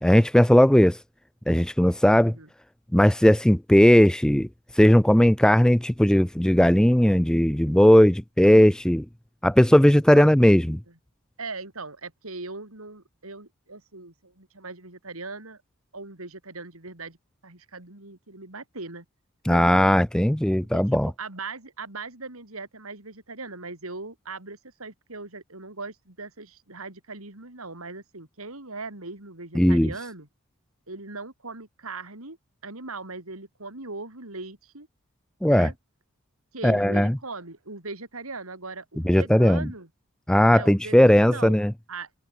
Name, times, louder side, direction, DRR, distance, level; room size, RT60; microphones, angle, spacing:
voice 1, 0.0-1.0 1.5-2.3 2.9-4.5 4.8-9.0 9.4-10.8 19.5-21.1 29.6-29.9 35.4-35.7 36.6-37.2 39.0-39.7 40.3-41.7, equal, 5° left, 0.4 m, -18 dB
voice 2, 9.9-10.3 10.9-11.0 11.4-15.6 15.9-17.2 17.4-19.0 19.5-19.7 20.7-30.3 30.9-32.4 32.6-34.9 35.5-35.7 36.5-39.9 40.5-41.6 41.9-42.3, right 3 dB, 85° right, 4.2 m, -39 dB
head